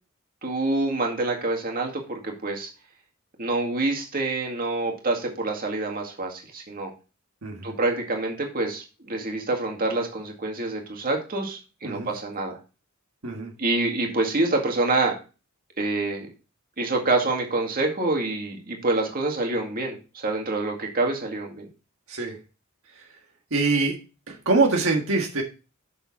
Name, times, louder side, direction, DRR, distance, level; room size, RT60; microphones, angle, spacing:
voice 1, 0.4-2.7 3.4-6.9 7.6-12.6 13.6-15.2 15.8-16.3 16.8-21.7, right 2 dB, 45° right, 1 dB, 2.0 m, -26 dB
voice 2, 7.4-7.8 11.8-12.1 13.2-13.5 22.1-22.4 22.9-23.0 23.5-24.0 24.3-25.4, right 3 dB, 75° right, 1 dB, 1.6 m, -24 dB
7.1 x 6.8 x 4.2 m, 0.32 s
head